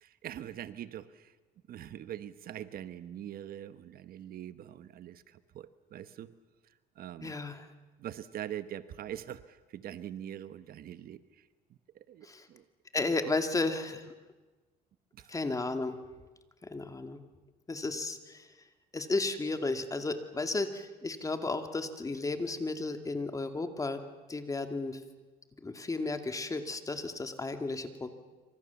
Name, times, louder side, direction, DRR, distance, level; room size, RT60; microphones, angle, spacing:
voice 1, 0.0-1.3 1.7-6.3 7.0-7.3 8.0-11.5 11.9-12.6 15.1-15.3, right 11 dB, 60° right, 13 dB, 1.1 m, -43 dB
voice 2, 7.2-7.7 12.2-12.5 12.9-14.1 15.3-16.0 16.6-17.2 17.7-18.5 18.9-24.0 24.3-25.0 25.6-28.1, left 3 dB, 20° left, 7 dB, 2.3 m, -33 dB
27.0 x 25.5 x 7.1 m, 1.2 s
cardioid pair, 110°, 17 cm